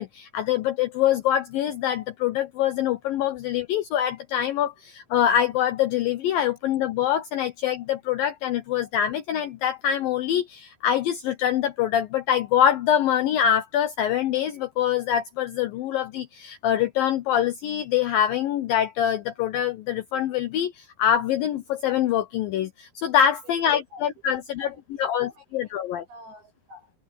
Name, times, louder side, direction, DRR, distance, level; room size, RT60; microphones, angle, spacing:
voice 1, 0.0-24.7 25.0-26.0, left 10 dB, 75° left, 2.1 m, -24 dB
voice 2, 23.4-24.0 24.6-25.7 26.1-27.0, equal, 75° right, 9.8 m, -48 dB
omnidirectional pair, 5.1 m